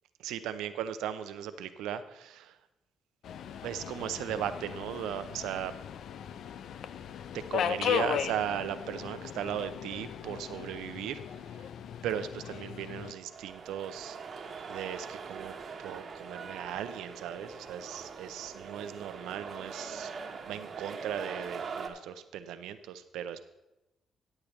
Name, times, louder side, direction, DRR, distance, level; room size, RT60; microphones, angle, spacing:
voice 1, 0.2-2.5 3.6-5.7 7.5-11.2 12.0-14.2 14.7-15.5 15.8-20.1 20.5-23.4, right 10 dB, 90° right, 11 dB, 0.6 m, -37 dB
Subway metro underground, 3.2-13.1, left 8 dB, 70° left, 0.5 m, -37 dB
sound 1, 12.9-21.9, right 5 dB, 50° right, 1.2 m, -42 dB
13.5 x 8.5 x 3.2 m, 0.93 s
cardioid pair, 90°, 0 cm